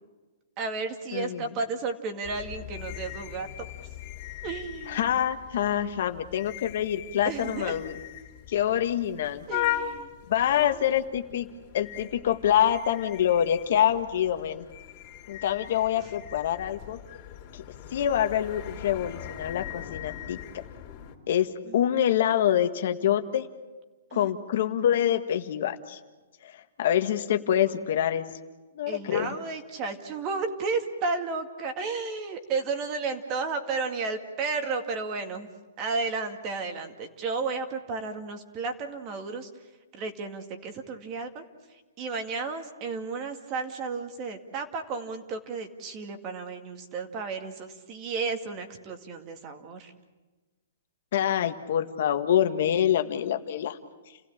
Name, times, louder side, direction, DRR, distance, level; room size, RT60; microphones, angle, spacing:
voice 1, 0.6-3.7 4.4-5.1 7.2-7.7 9.5-10.1 10.6-10.8 15.9-16.1 21.7-21.8 24.1-24.3 28.9-35.5 35.8-39.5 39.9-41.4 42.0-49.9, right 4 dB, 30° right, 6 dB, 2.2 m, -33 dB
voice 2, 1.1-1.5 4.9-7.9 8.5-9.5 10.3-11.5 11.7-14.6 15.3-17.0 17.5-17.6 17.9-20.4 21.3-23.5 24.1-26.0 26.4-26.5 26.8-28.2 28.7-29.4 51.1-53.8, left 10 dB, 60° left, 7 dB, 1.6 m, -26 dB
sound 1, 2.2-21.2, left 12 dB, 30° left, 3.5 m, -39 dB
29.5 x 16.0 x 8.6 m, 1.2 s
hypercardioid pair, 160°, 0 cm